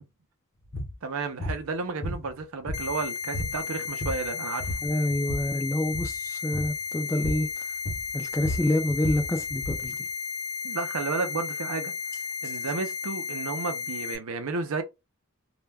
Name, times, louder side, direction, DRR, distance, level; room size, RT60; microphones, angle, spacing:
sound 1, 0.7-0.9 1.4-1.6 2.0-3.0 3.3-3.6 3.9-4.3 4.6-5.5 5.9-6.2 6.5-6.8 7.2-7.5 7.9-9.9, left 1 dB, 40° left, 0.7 m, -33 dB
voice 1, 1.0-4.8 10.6-11.9 12.4-14.8, right 4 dB, 70° right, 0.5 m, -32 dB
sound 2, 2.7-14.2, left 5 dB, 80° left, 0.6 m, -34 dB
voice 2, 4.8-7.7 8.1-9.9, left 1 dB, 15° left, 0.3 m, -27 dB
2.3 x 2.1 x 3.3 m
head